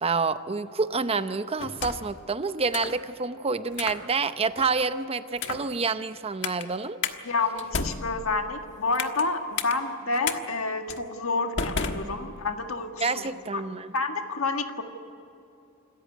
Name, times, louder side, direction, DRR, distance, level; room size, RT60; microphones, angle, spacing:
voice 1, 0.0-7.0 13.0-13.9, right 4 dB, 30° right, 12 dB, 0.7 m, -28 dB
sound 1, 1.6-2.2 2.7-3.0 3.7-4.0 4.6-4.9 5.4-5.7 6.4-6.6 7.0-7.2 7.6-9.3 9.6-9.7 10.2-10.4 10.9-11.0 11.6-12.6, left 5 dB, 60° left, 1.3 m, -32 dB
voice 2, 7.3-13.6 13.9-14.8, left 3 dB, 80° left, 5 dB, 1.8 m, -29 dB
26.5 x 14.5 x 9.1 m, 2.7 s
head